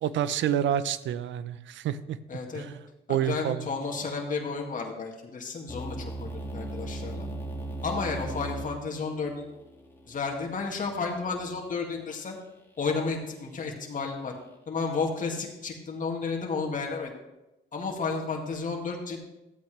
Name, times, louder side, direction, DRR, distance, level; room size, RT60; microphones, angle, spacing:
voice 1, 0.0-2.2 2.5-2.8 3.1-3.7, right 10 dB, 70° right, 15 dB, 0.6 m, -28 dB
voice 2, 2.3-2.6 3.1-7.3 7.8-9.5 10.1-12.4 12.8-14.3 14.7-17.1 17.7-19.2, left 4 dB, 40° left, 0 dB, 2.0 m, -32 dB
sound 1, 5.7-11.6, right 1 dB, 10° left, 2.1 m, -38 dB
13.5 x 8.5 x 3.2 m, 0.95 s
cardioid pair, 90°, 20 cm